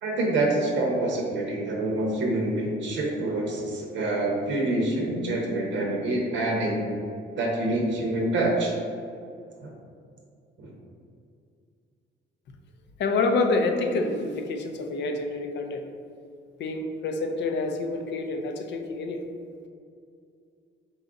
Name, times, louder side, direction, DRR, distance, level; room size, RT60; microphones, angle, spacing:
voice 1, 0.0-6.9 7.4-8.7 9.6-9.7 10.6-10.7, right 2 dB, 70° right, -1 dB, 0.7 m, -26 dB
voice 2, 13.0-15.8 16.6-19.2, left 3 dB, 65° left, 5 dB, 0.5 m, -27 dB
4.0 x 2.3 x 3.7 m, 2.4 s
cardioid pair, 90°, 20 cm